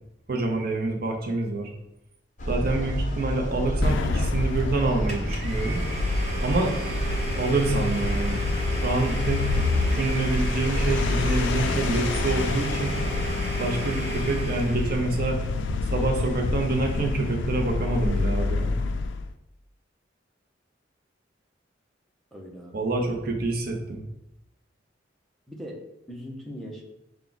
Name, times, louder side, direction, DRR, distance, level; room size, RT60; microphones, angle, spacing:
voice 1, 0.3-1.7 2.5-5.8 6.4-6.7 7.4-8.4 8.7-12.9 13.6-15.4 15.9-18.7 22.7-24.0, right 2 dB, 55° right, 2 dB, 0.7 m, -27 dB
sound 1, 2.4-13.4, equal, 40° left, 0.7 m, -30 dB
sound 2, 3.8-19.3, left 4 dB, 75° left, 0.3 m, -29 dB
Domestic sounds home sounds, 5.1-15.0, right 2 dB, 35° right, 1.1 m, -35 dB
voice 2, 22.3-22.8 25.5-25.8 26.1-26.8, equal, ahead, -2 dB, 0.7 m, -40 dB
5.8 x 2.4 x 3.9 m, 0.84 s
head